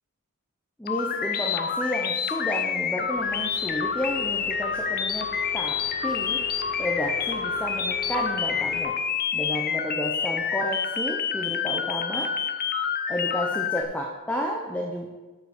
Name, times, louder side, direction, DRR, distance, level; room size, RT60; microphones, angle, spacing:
voice 1, 0.8-6.4 6.8-9.0 9.3-12.3 13.1-15.1, equal, 5° left, 0 dB, 0.7 m, -31 dB
sound 1, 0.9-13.8, left 7 dB, 45° left, 0.7 m, -28 dB
sound 2, 3.1-8.8, equal, 70° right, 1.5 m, -41 dB
8.4 x 5.7 x 6.5 m, 1.3 s
head